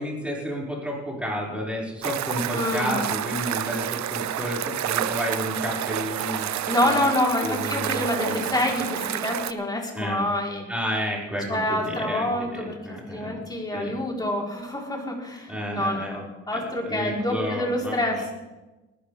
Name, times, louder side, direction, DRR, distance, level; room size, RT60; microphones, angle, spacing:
voice 1, 0.0-7.1 7.4-8.4 9.9-10.2 10.7-13.4 13.7-14.0 15.5-16.2 16.5-18.2, equal, 5° right, -4 dB, 5.6 m, -31 dB
sound 1, 2.0-9.5, right 11 dB, 65° right, 0.7 m, -29 dB
voice 2, 2.5-3.0 6.7-10.7 11.5-18.3, left 1 dB, 15° left, -1 dB, 4.0 m, -27 dB
20.0 x 13.0 x 3.5 m, 1.1 s
cardioid pair, 90°, 30 cm